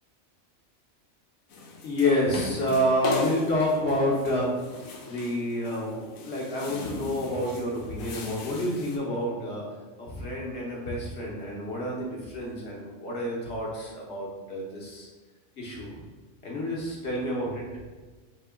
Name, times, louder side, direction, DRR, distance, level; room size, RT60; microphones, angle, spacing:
sound 1, 1.5-9.0, left 2 dB, 80° left, 1.1 m, -37 dB
voice 1, 1.8-4.5 5.1-9.6 10.0-15.1 15.6-15.9 16.4-17.6, left 1 dB, 55° left, -3 dB, 1.1 m, -29 dB
3.7 x 2.8 x 3.4 m, 1.3 s
omnidirectional pair, 1.4 m